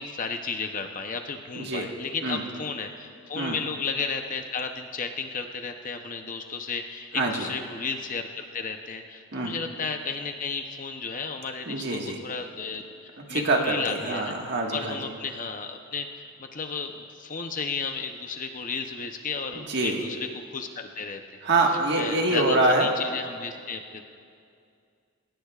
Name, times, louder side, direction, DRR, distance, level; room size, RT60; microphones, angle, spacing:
voice 1, 0.0-14.4 14.7-21.4 22.0-24.0, left 5 dB, 35° left, 5 dB, 0.7 m, -33 dB
voice 2, 1.5-1.9 2.2-2.4 3.4-3.6 7.1-7.5 9.3-9.5 11.7-12.2 13.3-15.1 19.7-20.0 21.4-22.9, right 2 dB, 50° right, 1 dB, 1.6 m, -25 dB
21.0 x 18.5 x 2.4 m, 2.3 s
head